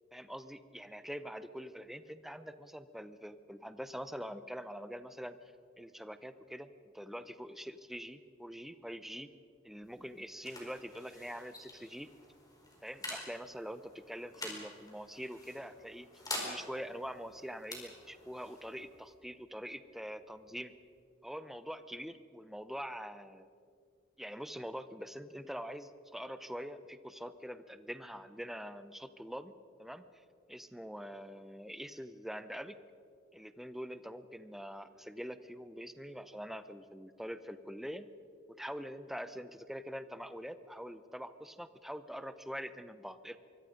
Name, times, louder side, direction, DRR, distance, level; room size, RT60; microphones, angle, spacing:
voice 1, 0.1-5.4 5.8-9.3 9.6-12.1 12.8-16.1 16.4-20.7 21.2-23.5 24.2-29.5 29.8-30.0 30.5-32.8 33.3-38.1 38.5-43.4, equal, ahead, 12 dB, 0.8 m, -44 dB
sound 1, 9.7-21.0, left 2 dB, 20° left, 4.8 m, -48 dB
25.0 x 23.0 x 5.3 m, 2.3 s
head